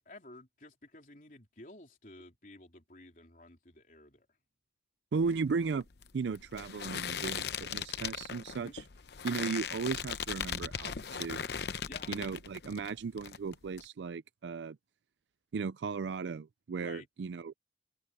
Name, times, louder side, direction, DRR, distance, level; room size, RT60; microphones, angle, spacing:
voice 1, 0.0-4.3 8.5-8.7 11.9-12.2 16.7-17.1, left 2 dB, 50° left, 3.8 m, -52 dB
voice 2, 5.1-5.8 6.1-8.8 9.2-10.9 11.2-11.4 12.1-14.8 15.5-17.6, right 5 dB, 90° right, 0.4 m, -36 dB
sound 1, 5.2-12.9 13.2-13.8, left 7 dB, 70° left, 0.8 m, -38 dB
head